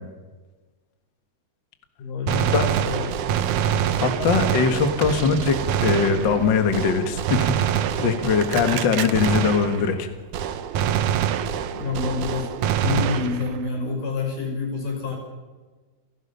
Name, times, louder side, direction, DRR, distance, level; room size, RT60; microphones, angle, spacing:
voice 1, 2.0-3.1 11.7-12.5 12.8-15.2, left 4 dB, 90° left, 2 dB, 6.7 m, -28 dB
Gunshot gunfire, 2.3-10.1 10.3-13.7, right 9 dB, 75° right, 2.5 m, -25 dB
voice 2, 4.0-5.6 5.8-7.5 8.0-10.1, left 5 dB, 45° left, 7 dB, 2.0 m, -21 dB
29.0 x 18.5 x 5.7 m, 1.3 s
omnidirectional pair, 3.6 m